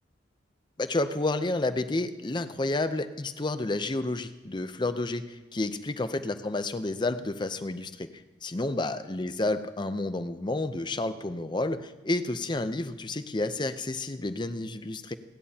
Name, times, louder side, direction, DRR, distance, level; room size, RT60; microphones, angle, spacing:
voice 1, 0.8-8.1 8.4-15.1, left 2 dB, 25° left, 11 dB, 0.6 m, -30 dB
30.0 x 10.5 x 2.8 m, 1.2 s
head